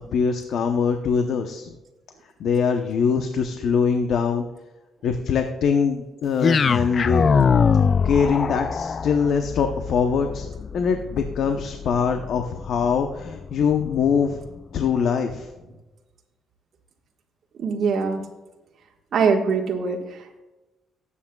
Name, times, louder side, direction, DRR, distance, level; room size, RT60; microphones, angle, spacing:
voice 1, 0.1-1.8 2.4-4.5 5.0-7.3 8.0-10.5 10.7-14.4 14.7-15.5, left 6 dB, 70° left, 5 dB, 0.8 m, -23 dB
sound 1, 6.4-14.6, left 6 dB, 45° left, 0.3 m, -24 dB
voice 2, 17.6-18.2 19.1-20.4, right 5 dB, 60° right, -1 dB, 1.5 m, -23 dB
19.0 x 8.4 x 2.3 m, 1.1 s
cardioid pair, 90°, 0 cm